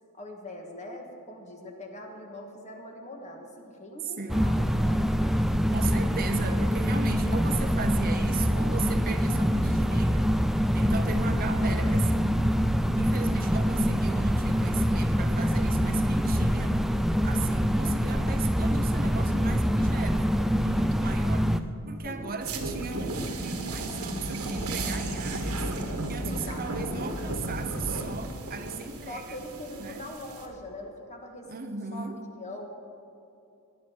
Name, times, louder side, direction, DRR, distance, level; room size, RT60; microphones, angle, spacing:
voice 1, 0.1-5.0 22.0-22.4 26.2-27.5 29.1-32.1 32.3-32.7, left 1 dB, 35° left, 2 dB, 1.8 m, -42 dB
voice 2, 4.2-4.7 5.7-12.4 13.0-16.9 17.2-21.6 21.9-29.4 29.8-30.0 31.5-32.2, right 4 dB, 45° right, 7 dB, 0.9 m, -37 dB
sound 1, 4.3-21.6, equal, ahead, 0.4 m, -25 dB
sound 2, 22.4-30.5, right 1 dB, 90° right, 1.8 m, -34 dB
19.0 x 11.0 x 4.7 m, 2.8 s
head